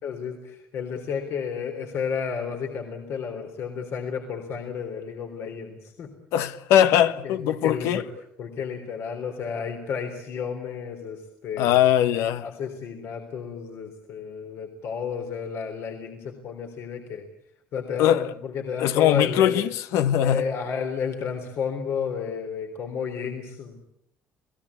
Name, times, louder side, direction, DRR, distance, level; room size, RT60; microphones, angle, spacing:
voice 1, 0.0-6.1 7.2-8.0 8.4-11.8 12.4-17.3 17.7-19.6 20.2-23.9, left 6 dB, 65° left, 3.5 m, -32 dB
voice 2, 6.3-8.0 11.6-12.5 18.0-18.3 18.8-20.4, left 11 dB, 80° left, 1.1 m, -21 dB
30.0 x 18.5 x 8.4 m
supercardioid pair, 85°, 5 cm